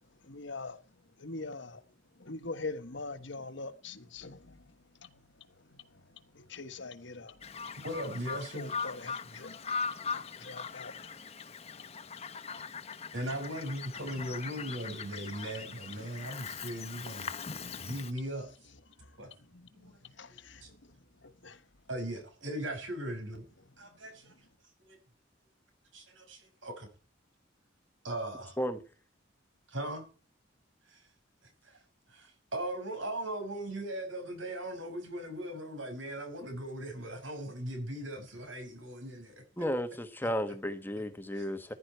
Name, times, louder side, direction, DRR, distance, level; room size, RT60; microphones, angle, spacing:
voice 1, 0.3-0.8 1.2-1.8 2.2-4.6 5.0-5.2 6.3-7.4 8.5-9.6 10.1-10.9 17.5-17.8 19.5-19.7 20.0-20.6 21.2-21.6, left 3 dB, 65° left, 1.4 m, -43 dB
Bird vocalization bird call bird song, 7.4-18.1, left 5 dB, 30° left, 1.1 m, -40 dB
voice 2, 7.8-8.7 13.1-17.3 17.8-18.5 19.2-19.3 19.7-19.9 20.3-20.7 21.9-23.4 23.8-24.3 24.8-25.0 25.9-26.9 28.0-28.5 29.7-30.0 30.9-31.0 31.6-31.8 32.1-39.4 40.2-40.3 41.3-41.5, right 1 dB, 75° right, 6.2 m, -39 dB
voice 3, 39.6-41.7, equal, 10° left, 1.2 m, -33 dB
15.0 x 11.0 x 4.6 m
head